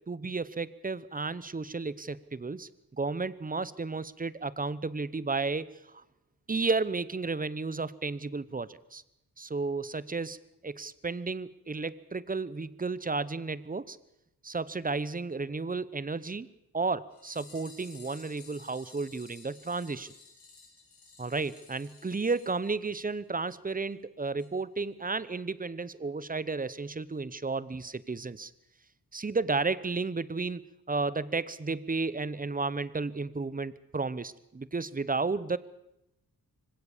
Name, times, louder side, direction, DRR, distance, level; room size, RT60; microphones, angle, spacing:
voice 1, 0.1-5.7 6.5-9.0 9.4-10.4 10.6-14.0 14.4-16.5 16.7-20.1 21.2-28.5 29.1-30.6 30.9-35.6, right 3 dB, 20° right, 18 dB, 0.8 m, -33 dB
sound 1, 17.1-23.3 23.6-23.7 23.9-24.0 24.4-24.5 24.8-24.9, left 4 dB, 60° left, 5.5 m, -54 dB
25.0 x 16.5 x 7.2 m, 0.84 s
wide cardioid pair, 125°, 38 cm